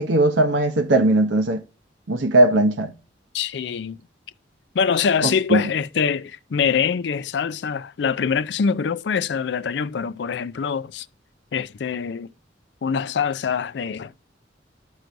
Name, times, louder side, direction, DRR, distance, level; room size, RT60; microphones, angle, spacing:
voice 1, 0.0-1.6 2.1-2.9 5.5-5.6, right 2 dB, 75° right, 0.7 m, -18 dB
voice 2, 3.3-4.0 4.7-11.1 11.5-12.3 12.8-14.1, left 6 dB, 65° left, 0.4 m, -24 dB
12.5 x 4.6 x 2.5 m
head